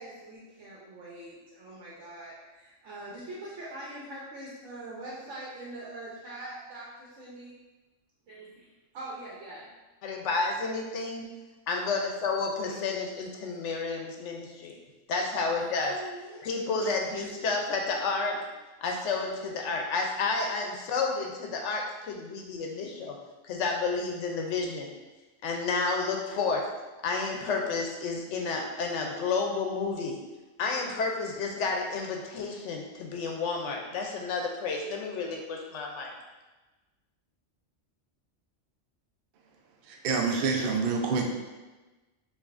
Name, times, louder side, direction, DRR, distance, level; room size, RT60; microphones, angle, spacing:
voice 1, 0.0-7.5 8.3-8.7 8.9-9.7 12.6-12.9 15.9-16.4 17.3-17.6, right 1 dB, 80° right, -6 dB, 1.1 m, -43 dB
voice 2, 10.0-11.3 11.7-14.8 15.1-16.0 16.4-18.4 18.8-23.2 23.4-24.9 25.4-26.7 27.0-30.2 30.6-36.1, left 4 dB, 75° left, 2 dB, 0.9 m, -31 dB
voice 3, 39.9-41.3, right 4 dB, 60° right, 1 dB, 0.6 m, -27 dB
4.8 x 2.6 x 2.5 m, 1.2 s
omnidirectional pair, 1.3 m